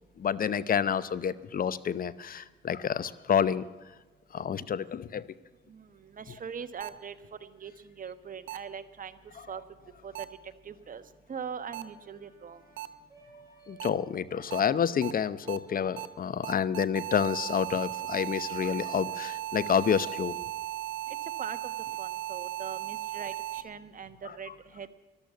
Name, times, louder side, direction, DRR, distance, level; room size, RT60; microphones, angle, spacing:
voice 1, 0.2-3.6 4.3-5.2 13.7-20.4, left 8 dB, 45° left, 18 dB, 0.8 m, -29 dB
voice 2, 5.7-7.1 7.4-9.2 9.5-9.6 10.0-11.0 11.3-12.6 21.1-21.7 22.0-24.9, right 7 dB, 45° right, 11 dB, 1.3 m, -41 dB
sound 1, 6.8-6.9 8.5-8.6 10.2-10.3 11.7-11.8 12.8-12.9 13.8-13.9 14.5-14.6 15.0-15.1 15.5-15.6 16.0-16.1 16.4-23.6, right 12 dB, 85° right, 0.7 m, -36 dB
Brass instrument, 10.7-16.1, right 2 dB, 15° right, 4.3 m, -55 dB
14.0 x 12.0 x 8.2 m, 1.3 s
cardioid pair, 90°, 20 cm